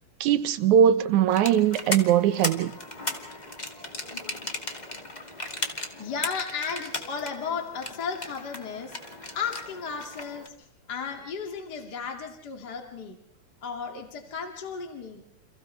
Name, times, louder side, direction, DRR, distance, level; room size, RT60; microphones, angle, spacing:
voice 1, 0.2-2.8, right 9 dB, 75° right, 2.4 m, -21 dB
sound 1, 1.3-10.5, left 2 dB, 15° left, 1.9 m, -36 dB
voice 2, 5.9-9.0 9.3-13.2 13.6-15.2, left 6 dB, 35° left, 2.7 m, -34 dB
29.5 x 29.0 x 3.3 m
omnidirectional pair, 3.5 m